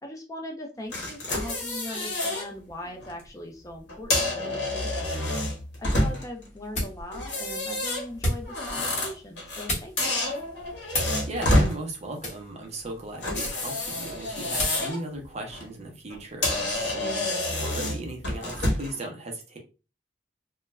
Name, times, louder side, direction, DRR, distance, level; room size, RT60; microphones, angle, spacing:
voice 1, 0.0-10.1, left 1 dB, 20° left, 3 dB, 0.4 m, -40 dB
sound 1, 0.9-2.5 2.9-3.1 3.9-6.4 7.1-9.7 10.0-11.7 13.2-15.0 15.4-15.6 16.1-16.2 16.4-19.0, left 1 dB, 65° left, 1.0 m, -28 dB
sound 2, 5.7-14.9, left 1 dB, 40° left, 1.0 m, -36 dB
voice 2, 11.3-17.2 17.6-19.6, right 2 dB, 35° right, 2 dB, 0.6 m, -36 dB
2.3 x 2.2 x 3.0 m, 0.33 s
head